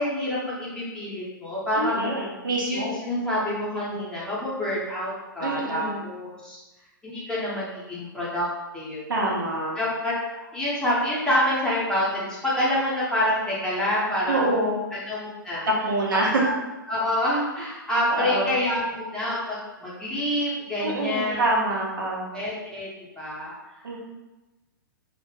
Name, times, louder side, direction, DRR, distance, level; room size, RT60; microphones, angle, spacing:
voice 1, 0.0-2.1 2.6-6.6 7.0-8.5 8.7-9.0 9.7-10.1 10.5-14.5 14.9-15.7 16.3-16.5 16.9-21.5 22.3-23.9, left 1 dB, 5° left, -8 dB, 0.7 m, -27 dB
voice 2, 1.8-3.0 5.4-6.1 9.1-9.8 14.3-14.8 15.8-16.3 18.1-18.5 20.8-22.3 23.8-24.0, right 2 dB, 70° right, -3 dB, 0.6 m, -26 dB
2.0 x 2.0 x 3.0 m, 1.1 s
figure-of-eight pair, 110°, 11 cm